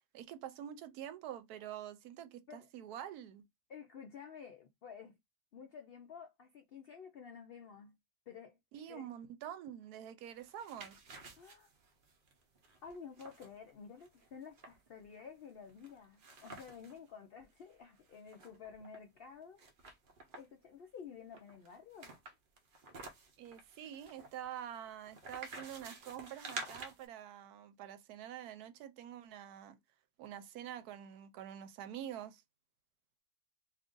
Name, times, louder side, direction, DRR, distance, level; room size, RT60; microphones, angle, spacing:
voice 1, 0.1-3.4 8.7-11.0 23.4-29.8 30.2-32.4, right 10 dB, 80° right, 1.1 m, -47 dB
voice 2, 3.7-5.2 5.5-8.0 8.3-8.6 8.9-9.1 11.4-11.7 12.8-19.6 20.4-22.2, left 6 dB, 85° left, 0.5 m, -51 dB
sound 1, 10.3-17.0 17.4-17.5 17.7-19.0 19.6-20.6 21.3-27.1, right 3 dB, 55° right, 0.6 m, -50 dB
2.8 x 2.5 x 3.6 m
omnidirectional pair, 1.7 m